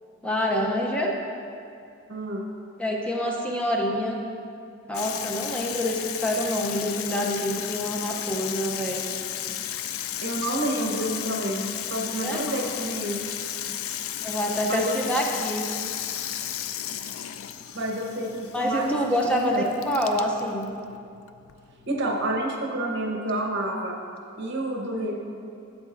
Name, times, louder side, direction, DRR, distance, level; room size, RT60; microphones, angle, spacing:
voice 1, 0.2-1.1 2.8-4.2 4.9-9.0 12.1-12.4 14.2-15.6 18.5-20.7, equal, 5° left, -1 dB, 0.6 m, -26 dB
voice 2, 2.1-2.5 10.2-13.2 14.7-15.2 17.7-19.6 21.9-24.0 24.4-25.2, right 1 dB, 60° right, 1 dB, 1.0 m, -29 dB
Water tap faucet / Sink (filling or washing), 4.9-22.4, left 10 dB, 85° left, 0.4 m, -34 dB
12.0 x 7.4 x 2.6 m, 2.5 s
head